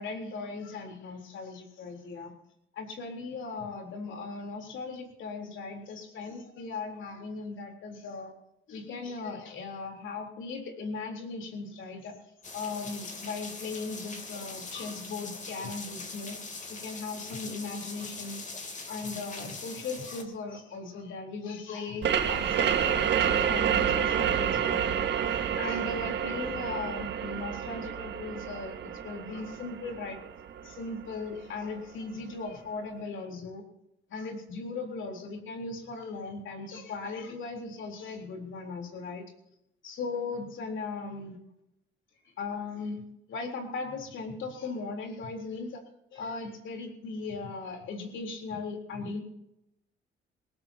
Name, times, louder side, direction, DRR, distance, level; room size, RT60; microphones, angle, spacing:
voice 1, 0.0-2.3 2.8-8.3 8.7-12.1 12.5-16.4 16.7-18.4 18.9-25.1 25.6-28.7 29.0-30.2 30.6-33.6 34.1-39.2 39.8-41.4 42.2-43.0 43.3-45.8 46.1-49.2, left 4 dB, 75° left, 2 dB, 4.0 m, -38 dB
sound 1, 12.4-20.2, left 3 dB, 40° left, 3.2 m, -42 dB
sound 2, 22.0-31.4, right 8 dB, 65° right, 1.8 m, -29 dB
20.5 x 18.0 x 2.9 m, 0.84 s
cardioid pair, 90°, 20 cm